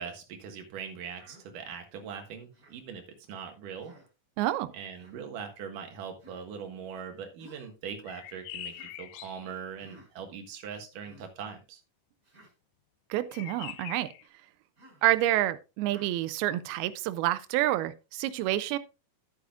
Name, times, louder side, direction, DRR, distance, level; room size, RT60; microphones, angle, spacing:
voice 1, 0.0-3.9 4.7-11.8, right 7 dB, 65° right, 3.0 m, -41 dB
Human voice, 1.1-1.4 2.5-2.8 3.8-4.1 4.9-5.2 6.2-6.5 7.4-7.7 8.7-9.0 9.8-10.1 10.9-11.3 12.2-12.5 13.5-13.8 14.8-15.1 15.9-16.1, right 1 dB, 20° right, 4.9 m, -55 dB
voice 2, 4.4-4.7 13.1-14.1 15.0-18.8, right 15 dB, 85° right, 2.5 m, -28 dB
sound 1, 8.0-9.5 13.3-14.3, left 14 dB, 90° left, 2.6 m, -43 dB
10.5 x 9.8 x 2.4 m
omnidirectional pair, 4.4 m